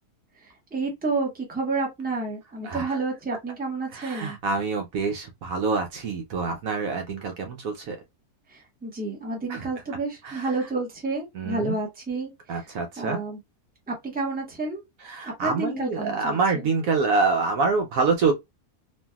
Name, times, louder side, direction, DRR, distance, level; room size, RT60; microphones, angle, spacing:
voice 1, 0.7-4.4 8.5-12.6 13.0-13.4 13.9-14.8 15.4-16.4, right 3 dB, 5° right, 0.8 m, -30 dB
voice 2, 2.6-3.0 3.9-8.0 9.5-9.7 10.2-10.5 11.3-11.8 12.5-13.2 15.0-18.3, right 4 dB, 70° right, 1.0 m, -26 dB
3.2 x 2.5 x 2.2 m
omnidirectional pair, 1.6 m